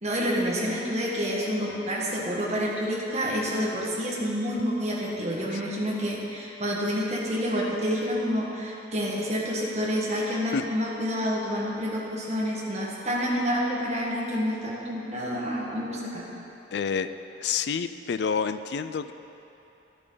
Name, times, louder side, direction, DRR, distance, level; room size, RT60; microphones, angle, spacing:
voice 1, 0.0-16.2, equal, 35° right, -4 dB, 1.6 m, -28 dB
voice 2, 16.7-17.1 17.4-19.1, left 6 dB, 60° left, 12 dB, 0.3 m, -28 dB
11.0 x 10.5 x 3.9 m, 3.0 s
head